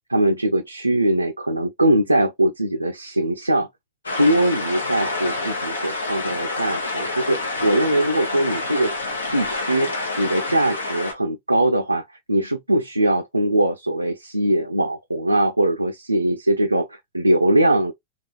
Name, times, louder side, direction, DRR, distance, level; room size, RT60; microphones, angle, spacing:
voice 1, 0.1-3.7 4.2-8.9 9.3-17.9, right 1 dB, 85° right, 0.4 m, -21 dB
sound 1, 4.0-11.1, left 2 dB, 75° left, 0.9 m, -28 dB
3.4 x 2.3 x 2.3 m
figure-of-eight pair, 90°, 0 cm